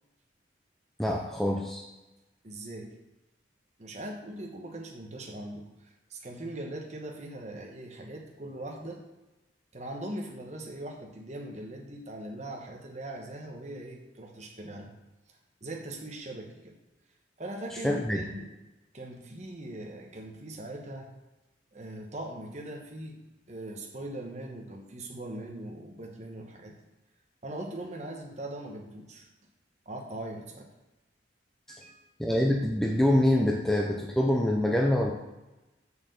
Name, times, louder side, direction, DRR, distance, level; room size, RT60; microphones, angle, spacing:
voice 1, 1.0-1.8 17.8-18.2 31.7-31.8 32.2-35.1, left 1 dB, ahead, 0 dB, 0.5 m, -25 dB
voice 2, 2.4-2.9 3.8-9.0 9.7-14.9 15.6-16.8 17.4-18.5 18.9-21.1 21.7-23.2 23.5-26.8 27.4-29.3 29.9-30.7 31.7-32.0, right 1 dB, 35° right, 0 dB, 1.1 m, -40 dB
6.9 x 4.5 x 6.8 m, 1.0 s
head